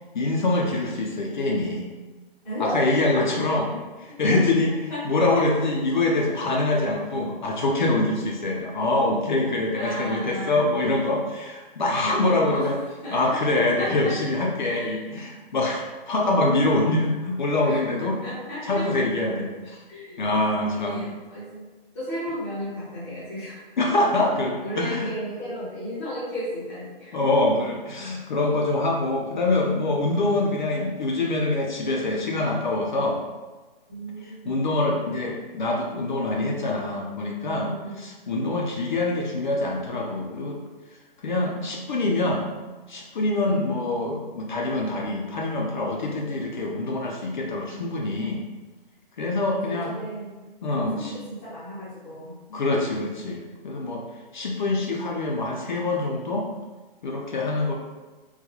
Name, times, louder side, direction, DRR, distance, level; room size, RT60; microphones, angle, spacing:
voice 1, 0.1-1.9 2.6-3.6 4.2-12.8 13.1-18.2 18.6-19.8 20.2-21.1 23.8-25.1 27.1-33.2 34.2-40.6 41.2-42.5 42.9-48.4 49.2-50.0 50.6-51.1 52.5-54.0 54.3-56.5 57.0-57.7, left 2 dB, 50° left, -1 dB, 0.5 m, -25 dB
voice 2, 2.4-2.8 3.2-3.8 4.3-4.4 4.9-5.0 5.3-5.7 9.7-10.7 11.9-12.7 13.0-14.1 14.6-15.0 17.6-18.9 19.9-20.3 20.7-21.6 21.9-23.6 24.1-27.3 33.9-34.6 37.6-38.0 49.6-50.4 50.7-52.3, equal, 5° left, -14 dB, 0.6 m, -34 dB
3.9 x 2.2 x 2.9 m, 1.2 s
hypercardioid pair, 170°, 30 cm